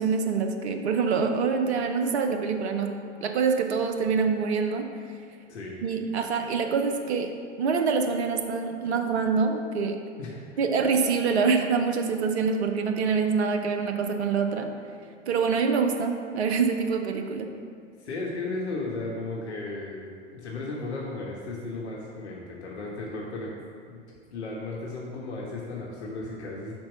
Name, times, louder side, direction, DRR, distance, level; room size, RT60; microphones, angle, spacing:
voice 1, 0.0-2.9 3.2-4.9 5.8-7.3 7.6-10.0 10.6-14.7 15.3-17.5, right 5 dB, 65° right, 5 dB, 0.8 m, -25 dB
voice 2, 5.5-5.8 10.2-10.4 18.0-23.5 23.9-24.0 24.3-26.7, left 2 dB, 65° left, -3 dB, 1.0 m, -35 dB
5.3 x 4.4 x 6.2 m, 2.3 s
figure-of-eight pair, 90°, 36 cm